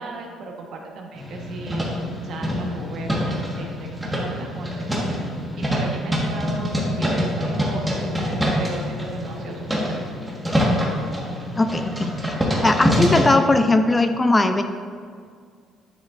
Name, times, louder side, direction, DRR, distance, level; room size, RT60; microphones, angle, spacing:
voice 1, 0.0-1.8 2.2-5.1 5.6-8.0 8.6-10.0, right 3 dB, 65° right, 1 dB, 1.3 m, -35 dB
sound 1, 1.2-13.3, equal, 10° right, 1.6 m, -25 dB
voice 2, 11.6-12.4 12.6-14.6, left 2 dB, 20° left, 8 dB, 0.4 m, -19 dB
9.6 x 7.2 x 2.6 m, 2.1 s
cardioid pair, 90°, 0 cm